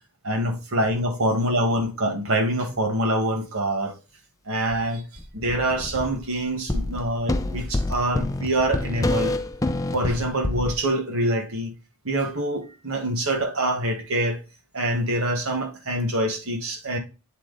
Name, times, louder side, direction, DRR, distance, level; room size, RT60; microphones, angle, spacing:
voice 1, 0.2-4.0 4.5-5.0 5.3-9.3 9.9-11.7 12.0-14.4 14.7-17.0, right 1 dB, 65° right, 1.7 m, -25 dB
sound 1, 4.7-4.8 5.2-6.3 6.7-10.7, left 2 dB, 15° left, 0.4 m, -27 dB
8.4 x 3.1 x 4.0 m
head